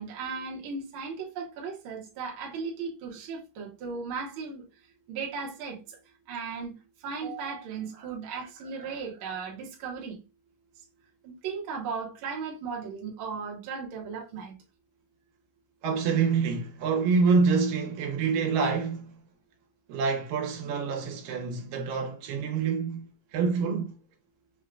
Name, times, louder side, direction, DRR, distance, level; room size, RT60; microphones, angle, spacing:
voice 1, 0.0-4.6 5.1-6.0 6.3-6.7 7.0-10.2 11.2-14.5, right 5 dB, 70° right, 1.2 m, -36 dB
voice 2, 15.8-19.1 19.9-24.0, right 5 dB, 85° right, 2.6 m, -27 dB
5.4 x 2.2 x 2.2 m
omnidirectional pair, 3.9 m